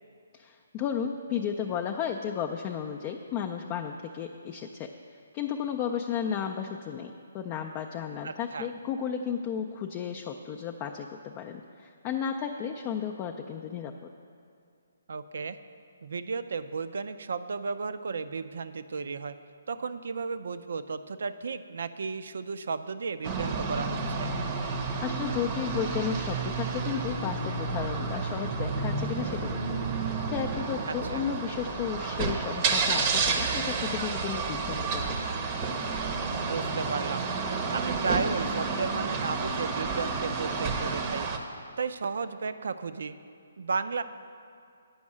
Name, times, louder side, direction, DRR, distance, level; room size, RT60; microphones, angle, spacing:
voice 1, 0.3-4.9 5.3-13.9 25.0-29.8 30.3-35.2, left 8 dB, 25° left, 3 dB, 0.4 m, -33 dB
voice 2, 8.2-8.7 15.1-15.6 16.0-19.4 19.7-24.3 30.9-31.2 36.5-37.3 37.7-41.3 41.8-43.1 43.6-44.0, right 4 dB, 70° right, 12 dB, 0.4 m, -34 dB
sound 1, 23.2-41.4, right 4 dB, 30° right, 0.7 m, -30 dB
8.6 x 5.3 x 7.3 m, 2.4 s
hypercardioid pair, 150°, 0 cm